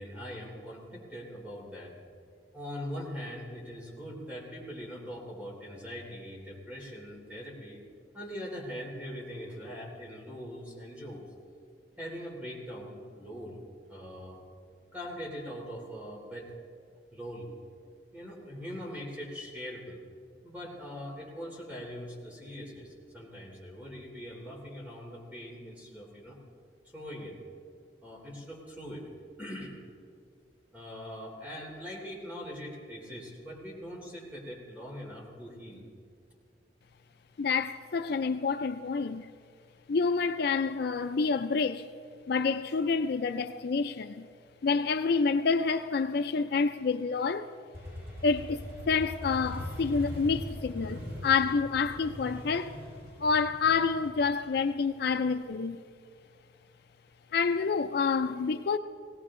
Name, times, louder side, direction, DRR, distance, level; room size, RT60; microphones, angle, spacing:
voice 1, 0.0-2.0 2.5-7.8 8.1-11.2 12.0-13.6 13.9-14.4 14.9-16.6 17.1-17.5 18.1-20.0 20.4-26.4 26.9-27.4 28.0-29.1 29.4-29.7 30.7-35.9, equal, 10° right, 3.2 m, -42 dB
voice 2, 37.4-39.3 39.9-41.9 42.3-44.3 44.6-47.5 48.2-52.8 53.2-55.8 57.3-58.8, left 5 dB, 60° left, 0.4 m, -28 dB
Motorcycle, 47.7-55.4, left 1 dB, 60° right, 4.5 m, -41 dB
18.5 x 18.0 x 3.7 m
head